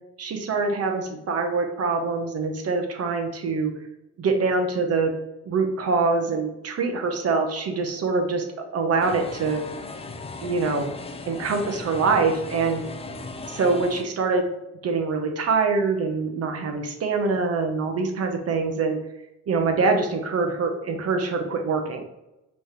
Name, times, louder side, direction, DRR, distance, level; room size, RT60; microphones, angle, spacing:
voice 1, 0.2-3.7 4.2-5.1 5.4-8.4 8.7-9.6 10.4-10.9 11.3-12.8 13.5-14.5 14.8-19.0 19.5-22.0, right 4 dB, 55° right, 4 dB, 1.0 m, -24 dB
sound 1, 9.0-14.0, left 3 dB, 20° left, 0.4 m, -37 dB
5.3 x 3.2 x 3.1 m, 0.92 s
cardioid pair, 90°, 30 cm